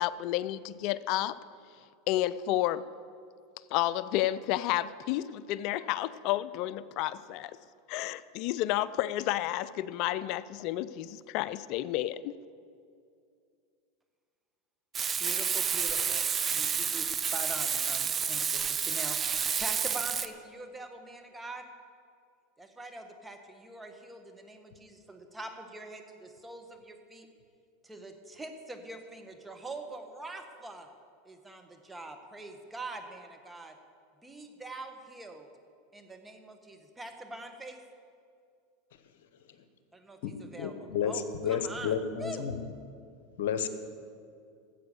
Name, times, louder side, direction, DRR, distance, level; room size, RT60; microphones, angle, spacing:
voice 1, 0.0-1.4 2.1-2.8 3.7-7.6 7.9-12.3, left 14 dB, 55° left, 17 dB, 0.4 m, -31 dB
Frying (food), 14.9-20.3, right 7 dB, 30° right, 0.6 m, -30 dB
voice 2, 15.2-21.7 22.6-27.3 27.8-30.9 31.2-33.7 34.2-35.5 35.9-37.8 39.9-42.4, right 2 dB, 10° right, 5 dB, 1.5 m, -44 dB
voice 3, 40.2-42.7 43.4-43.7, left 7 dB, 75° left, 10 dB, 1.1 m, -32 dB
13.5 x 7.9 x 6.8 m, 2.3 s
hypercardioid pair, 100°, 0 cm